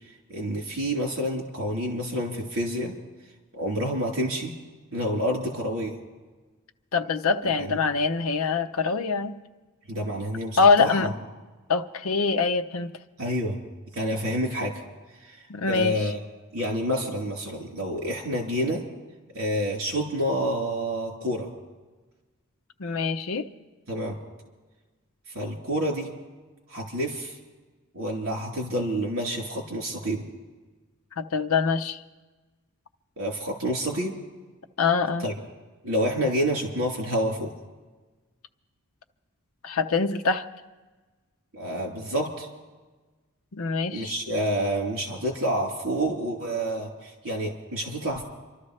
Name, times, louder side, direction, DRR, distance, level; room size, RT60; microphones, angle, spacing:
voice 1, 0.3-2.9 3.6-4.5 4.9-6.0 7.6-7.8 9.9-11.1 13.2-13.6 13.9-14.7 15.2-15.4 15.7-16.2 16.5-18.8 19.3-21.5 23.9-24.2 25.3-26.1 26.7-27.3 27.9-30.3 33.2-34.2 35.2-35.3 35.8-37.5 41.5-42.5 43.9-48.2, equal, 70° right, -1 dB, 3.7 m, -28 dB
voice 2, 6.9-9.4 10.6-11.1 11.7-13.0 15.5-16.1 22.8-23.5 31.2-32.0 34.8-35.3 39.6-40.4 43.5-44.1, left 4 dB, 70° left, 5 dB, 0.7 m, -24 dB
29.5 x 13.0 x 3.3 m, 1.3 s
head